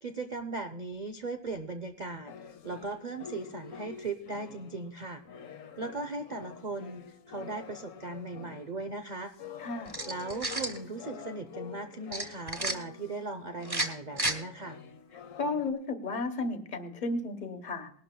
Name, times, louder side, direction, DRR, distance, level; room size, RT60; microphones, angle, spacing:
voice 1, 0.0-5.2 5.8-9.3 10.1-14.8, right 3 dB, 85° right, 7 dB, 0.3 m, -38 dB
sound 1, 2.3-13.3 13.5-15.7, left 7 dB, 55° left, 1.2 m, -47 dB
voice 2, 9.6-10.0 15.4-17.9, left 3 dB, 30° left, 8 dB, 1.2 m, -33 dB
sound 2, 9.9-10.8 12.1-12.8 13.6-14.4, right 2 dB, 15° right, 1.1 m, -32 dB
20.0 x 11.5 x 2.3 m, 0.62 s
omnidirectional pair, 1.8 m